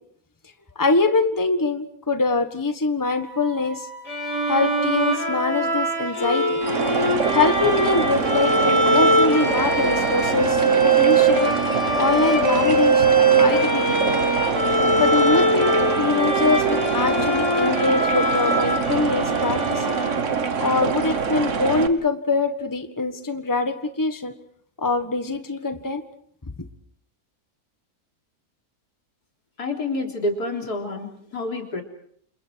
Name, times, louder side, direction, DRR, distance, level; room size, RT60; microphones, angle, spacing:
voice 1, 0.7-3.9 4.5-6.6 7.3-11.5 11.9-14.2 15.0-20.0 20.6-24.3 24.8-26.0, left 3 dB, 15° left, 8 dB, 1.5 m, -23 dB
Wind instrument woodwind instrument, 3.0-7.2, right 3 dB, 35° right, 8.3 m, -41 dB
Bowed string instrument, 4.1-20.6, right 2 dB, 45° left, 6.6 m, -22 dB
sound 1, 6.6-21.9, right 5 dB, 55° right, 1.7 m, -25 dB
voice 2, 29.6-31.8, left 2 dB, 90° left, 2 dB, 4.1 m, -28 dB
29.0 x 27.5 x 4.7 m, 0.64 s
omnidirectional pair, 1.6 m